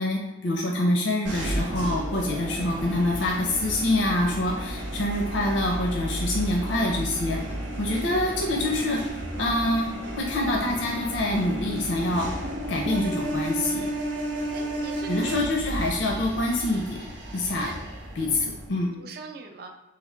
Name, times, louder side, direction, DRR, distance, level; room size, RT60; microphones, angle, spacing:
voice 1, 0.0-7.4 7.8-12.3 12.7-13.9 15.1-17.0 17.3-17.7 18.1-18.9, left 1 dB, 75° left, 0 dB, 0.5 m, -26 dB
sound 1, 1.2-18.7, right 1 dB, 75° right, 0.8 m, -33 dB
voice 2, 14.5-15.3 17.6-17.8 18.2-18.4 19.0-19.7, right 3 dB, 55° right, 4 dB, 0.4 m, -42 dB
3.3 x 2.8 x 3.7 m, 1.0 s
head